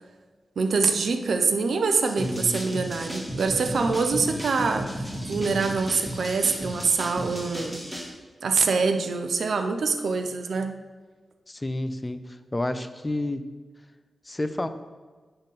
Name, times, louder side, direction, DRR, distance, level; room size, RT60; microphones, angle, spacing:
voice 1, 0.6-7.8 8.4-10.7, right 4 dB, 75° right, 6 dB, 0.6 m, -25 dB
voice 2, 2.2-2.6 11.5-13.4 14.3-14.7, left 1 dB, 25° left, 10 dB, 0.6 m, -30 dB
sound 1, 2.2-8.1, equal, 10° right, 2.1 m, -34 dB
10.5 x 3.9 x 4.1 m, 1.4 s
supercardioid pair, 40°, 0 cm